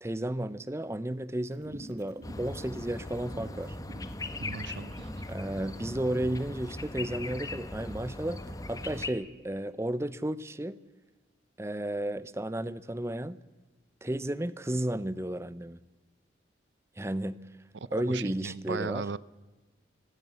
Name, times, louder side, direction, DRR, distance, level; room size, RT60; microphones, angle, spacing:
voice 1, 0.0-3.8 5.3-8.4 8.7-10.8 11.6-13.4 14.0-15.8 17.0-17.4 17.9-19.0, right 1 dB, 15° right, 17 dB, 0.6 m, -33 dB
sound 1, 1.5-6.3, right 1 dB, 40° right, 2.4 m, -48 dB
sound 2, 2.2-9.1, left 2 dB, 20° left, 1.1 m, -39 dB
voice 2, 4.4-5.2 17.7-19.2, right 4 dB, 80° right, 20 dB, 0.6 m, -37 dB
19.0 x 15.5 x 9.7 m, 1.2 s
head